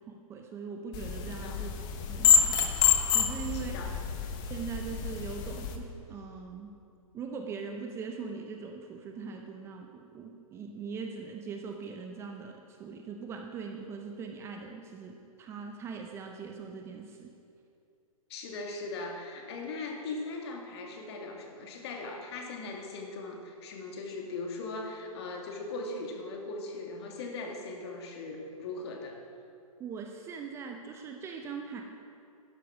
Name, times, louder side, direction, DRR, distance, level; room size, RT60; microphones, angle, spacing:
voice 1, 0.1-1.7 2.1-2.3 3.1-3.9 4.5-6.7 7.1-17.3 29.8-31.8, right 5 dB, 15° right, 3 dB, 0.6 m, -41 dB
sound 1, 0.9-5.8, left 7 dB, 25° left, 0.9 m, -27 dB
voice 2, 1.3-1.6 3.5-3.9 18.3-29.2, left 3 dB, 45° left, 1 dB, 2.0 m, -39 dB
12.5 x 10.5 x 4.9 m, 2.5 s
hypercardioid pair, 140°, 19 cm